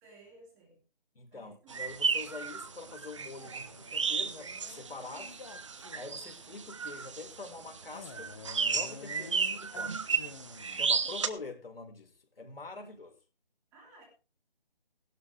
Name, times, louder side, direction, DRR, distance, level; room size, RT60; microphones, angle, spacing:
voice 1, 0.0-0.8 1.3-1.9 10.7-11.2 12.8-13.0 13.7-14.1, right 2 dB, 10° right, 2.6 m, -58 dB
voice 2, 1.2-5.4 5.9-10.1 10.7-13.2, left 3 dB, 70° left, 5.4 m, -45 dB
sound 1, 1.7-11.3, right 5 dB, 30° right, 1.1 m, -33 dB
Male speech man speaking, 3.4-6.4 7.9-10.9, left 5 dB, 35° left, 1.6 m, -50 dB
18.0 x 12.5 x 3.5 m
figure-of-eight pair, 170°, 30 cm